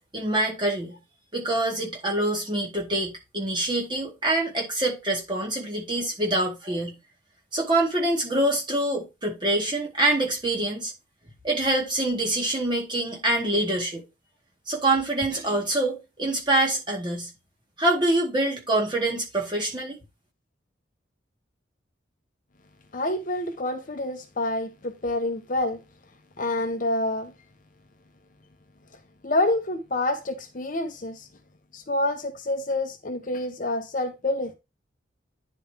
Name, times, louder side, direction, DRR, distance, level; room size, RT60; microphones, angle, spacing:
voice 1, 0.1-0.9 1.3-6.9 7.5-10.9 11.4-14.0 14.7-17.3 17.8-20.0, right 1 dB, 25° right, 2.1 m, -25 dB
voice 2, 22.9-25.8 26.4-27.3 29.2-31.3 31.7-34.5, left 2 dB, 40° left, 0.8 m, -27 dB
10.0 x 4.3 x 3.4 m
head